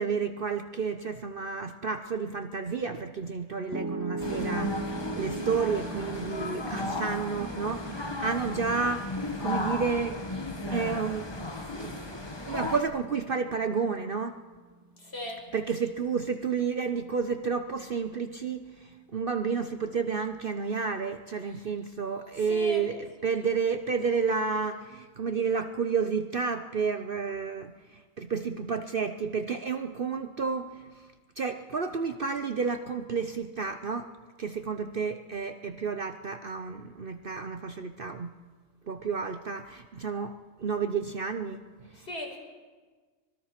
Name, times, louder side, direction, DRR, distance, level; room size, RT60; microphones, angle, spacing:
voice 1, 0.0-10.2 10.7-11.3 11.7-14.4 15.5-27.7 28.2-30.7 31.4-34.1 34.4-38.3 38.9-41.9, right 5 dB, 45° right, 7 dB, 0.9 m, -31 dB
Piano, 3.7-15.9, right 3 dB, 20° right, 0.5 m, -40 dB
sound 1, 4.2-12.8, left 2 dB, 20° left, 1.4 m, -35 dB
voice 2, 15.0-15.4 21.4-21.6 22.4-22.9 24.0-24.1 42.1-42.4, left 1 dB, 50° left, 0 dB, 4.9 m, -38 dB
25.0 x 20.0 x 5.9 m, 1.4 s
omnidirectional pair, 1.4 m